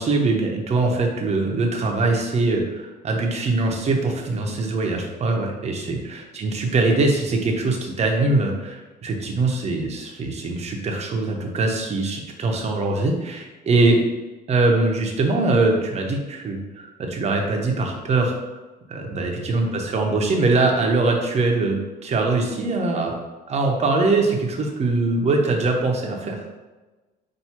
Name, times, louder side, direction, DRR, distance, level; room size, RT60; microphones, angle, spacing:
voice 1, 0.0-6.0 6.3-14.0 14.5-18.6 18.9-23.2 23.5-26.4, right 3 dB, 40° right, 1 dB, 0.8 m, -22 dB
5.8 x 2.6 x 2.9 m, 1.2 s
cardioid pair, 110°, 17 cm